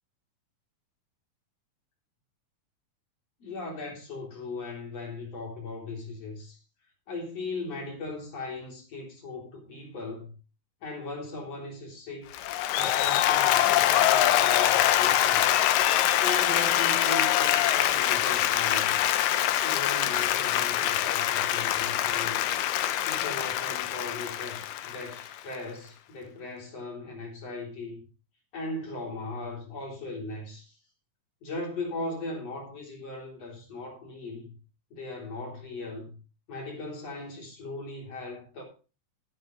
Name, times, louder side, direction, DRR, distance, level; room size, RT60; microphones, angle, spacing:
voice 1, 3.4-6.6 7.1-10.3 10.8-12.3 12.7-15.4 16.2-19.0 19.6-22.6 23.1-28.0 28.5-30.8 31.4-34.5 34.9-36.2 36.5-38.6, left 2 dB, 45° left, 4.7 m, -38 dB
Applause, 12.3-25.5, left 12 dB, 85° left, 2.4 m, -24 dB
13.5 x 10.5 x 3.3 m
omnidirectional pair, 3.9 m